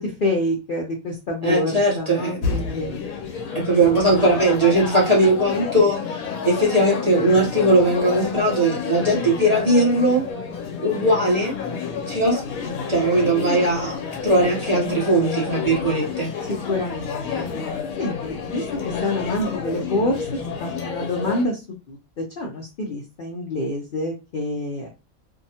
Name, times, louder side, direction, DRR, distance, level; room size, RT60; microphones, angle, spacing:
voice 1, 0.0-3.0 16.7-17.4 18.0-18.6 19.0-20.3 20.6-24.9, left 1 dB, 55° left, 0 dB, 0.6 m, -27 dB
voice 2, 1.4-2.5 3.5-6.0 6.4-10.2 10.8-11.5 12.1-12.4 12.9-14.0 14.2-16.3, right 1 dB, 35° right, -4 dB, 0.8 m, -19 dB
sound 1, 2.4-21.4, left 5 dB, 80° left, 1.1 m, -29 dB
2.7 x 2.2 x 2.7 m, 0.28 s
omnidirectional pair, 1.4 m